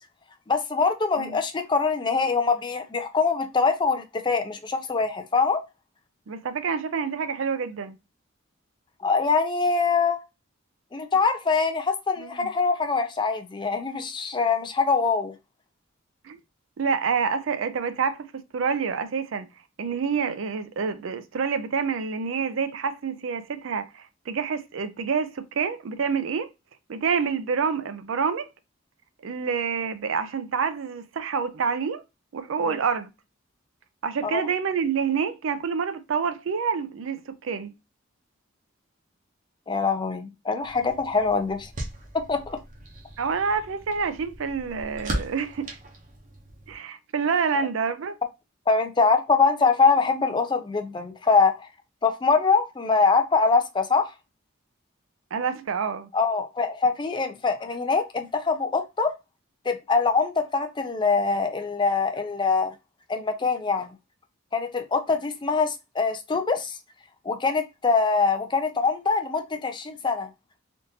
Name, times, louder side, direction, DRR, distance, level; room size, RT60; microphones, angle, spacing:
voice 1, 0.5-5.6 9.0-10.2 10.9-15.3 32.7-32.8 34.2-34.4 39.7-41.7 42.1-42.6 48.7-51.7 52.0-54.1 56.1-59.1 59.7-62.7 63.1-63.9 64.5-66.8 67.2-70.3, left 4 dB, 20° left, 0.4 m, -23 dB
voice 2, 6.3-8.0 12.2-12.5 16.2-16.4 16.8-19.5 19.8-26.5 26.9-28.5 29.2-32.0 32.3-33.1 34.0-37.7 43.2-45.8 46.7-48.2 55.3-56.1, right 6 dB, 75° right, 0.4 m, -27 dB
sound 1, 40.6-46.8, right 1 dB, 40° right, 0.7 m, -38 dB
3.5 x 2.5 x 2.7 m
head